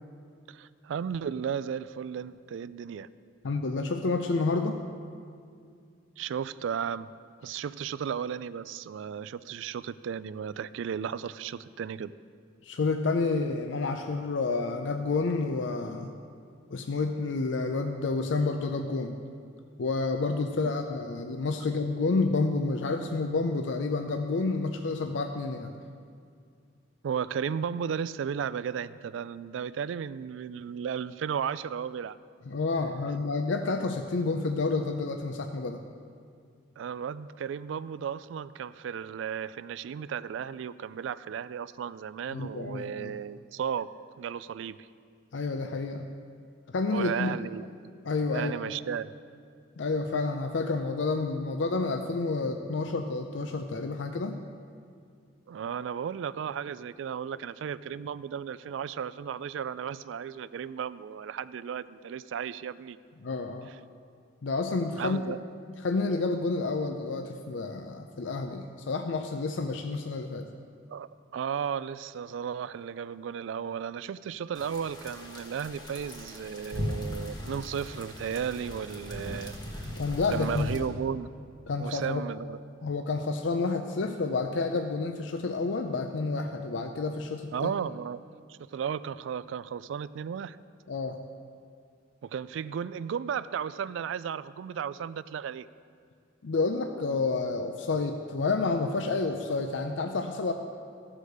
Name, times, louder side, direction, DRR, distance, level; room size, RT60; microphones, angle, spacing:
voice 1, 0.5-3.1 6.2-7.1 7.4-12.1 20.6-20.7 27.0-32.2 36.8-43.9 44.2-44.9 46.9-47.7 48.3-49.1 55.5-63.0 63.7-63.8 65.0-65.4 70.9-79.9 80.3-81.3 81.8-82.6 87.5-88.2 88.5-90.6 92.2-95.7, right 7 dB, 75° right, 16 dB, 0.3 m, -34 dB
voice 2, 3.4-4.8 12.6-16.1 16.7-19.2 19.8-25.7 32.5-35.8 42.3-43.1 45.3-46.1 46.7-47.4 48.0-48.5 49.8-54.4 63.2-63.7 64.4-65.3 65.8-70.5 80.0-80.9 81.7-82.2 82.8-87.7 90.9-91.2 96.4-100.5, left 3 dB, 70° left, 5 dB, 0.5 m, -29 dB
sound 1, 74.5-80.8, equal, 25° left, 1.4 m, -38 dB
15.0 x 5.0 x 6.5 m, 2.3 s
head